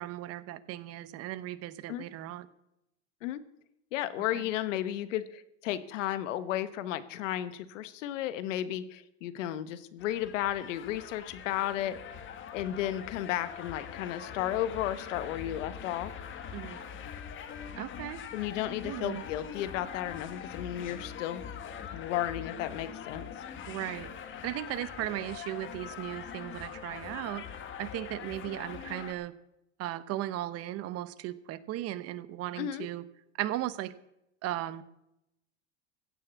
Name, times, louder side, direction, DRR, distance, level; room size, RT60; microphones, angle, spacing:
voice 1, 0.0-2.5 4.3-4.4 16.5-16.8 17.8-18.2 18.8-19.2 23.7-24.1 24.4-29.3 29.8-33.0 33.3-33.9 34.4-34.8, right 14 dB, 40° right, 16 dB, 0.9 m, -36 dB
voice 2, 3.9-12.2 12.5-16.1 18.3-21.4 21.9-23.3 32.6-32.9, left 12 dB, 85° left, 13 dB, 1.3 m, -33 dB
sound 1, 10.0-29.1, left 8 dB, 30° left, 1.4 m, -43 dB
15.5 x 7.4 x 8.2 m, 0.84 s
supercardioid pair, 140°, 37 cm